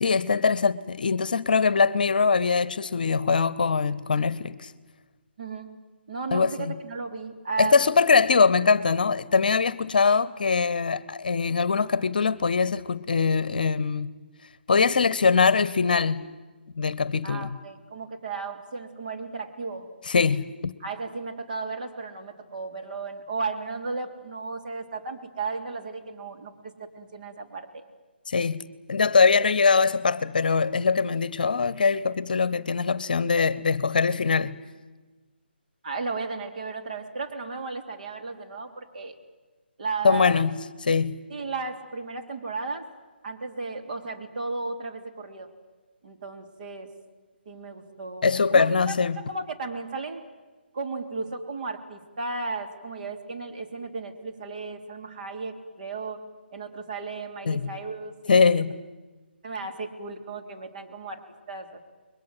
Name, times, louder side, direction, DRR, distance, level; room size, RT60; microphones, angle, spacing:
voice 1, 0.0-4.7 6.3-6.7 7.6-14.1 14.7-16.2 16.8-17.5 20.1-20.7 28.3-28.6 28.9-34.6 40.0-40.6 40.9-41.2 48.2-49.2 57.5-57.6 58.3-58.7, left 5 dB, 50° left, 0.9 m, -22 dB
voice 2, 5.4-5.7 6.1-7.9 17.2-19.9 20.8-27.9 35.8-39.2 39.8-40.4 41.3-42.9 43.2-45.5 46.0-46.9 47.5-50.2 50.7-56.2 56.5-58.5 59.4-61.8, right 4 dB, 45° right, 3.6 m, -35 dB
30.0 x 22.0 x 7.9 m
figure-of-eight pair, 145°, 6 cm